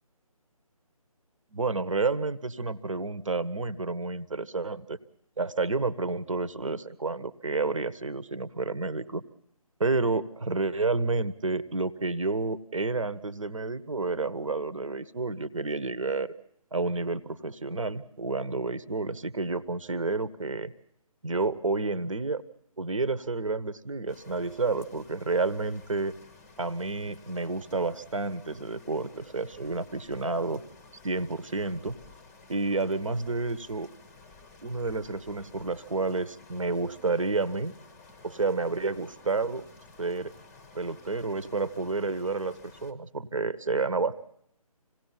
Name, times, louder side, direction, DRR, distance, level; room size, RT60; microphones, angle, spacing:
voice 1, 1.5-5.0 5.4-9.2 9.8-16.3 16.7-20.7 21.2-22.4 22.8-26.1 26.6-30.6 31.0-32.0 32.5-33.9 34.6-37.7 38.2-39.6 40.0-40.3 40.7-42.6 42.8-44.1, right 3 dB, 60° right, 17 dB, 1.3 m, -30 dB
sound 1, 24.1-42.9, left 4 dB, 5° left, 0.9 m, -53 dB
26.5 x 17.5 x 5.7 m, 0.72 s
figure-of-eight pair, 150°, 19 cm